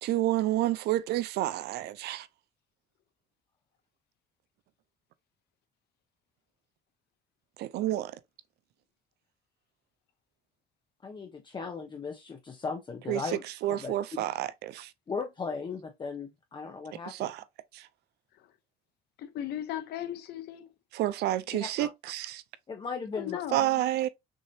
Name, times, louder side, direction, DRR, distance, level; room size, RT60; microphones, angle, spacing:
voice 1, 0.0-2.3 7.6-8.2 13.1-14.9 17.1-17.4 17.7-17.9 20.9-22.4 23.5-24.1, right 14 dB, 75° right, 0.5 m, -29 dB
voice 2, 11.0-13.4 13.8-14.2 15.1-17.3 21.5-21.9 22.7-23.4, left 5 dB, 30° left, 0.8 m, -37 dB
voice 3, 19.2-20.7 23.1-23.8, left 11 dB, 75° left, 0.9 m, -37 dB
6.3 x 2.8 x 2.8 m
cardioid pair, 110°, 17 cm